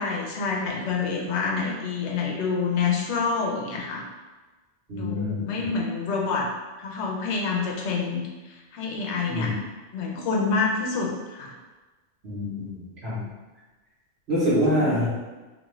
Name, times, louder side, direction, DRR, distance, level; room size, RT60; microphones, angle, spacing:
voice 1, 0.0-4.0 4.9-6.5 6.8-9.6 9.9-11.5 14.7-15.0, left 4 dB, 70° left, 0 dB, 0.9 m, -27 dB
voice 2, 4.9-5.7 9.3-9.5 12.2-13.3 14.3-15.1, equal, 60° right, -11 dB, 1.2 m, -26 dB
2.7 x 2.3 x 3.0 m, 1.2 s
omnidirectional pair, 1.2 m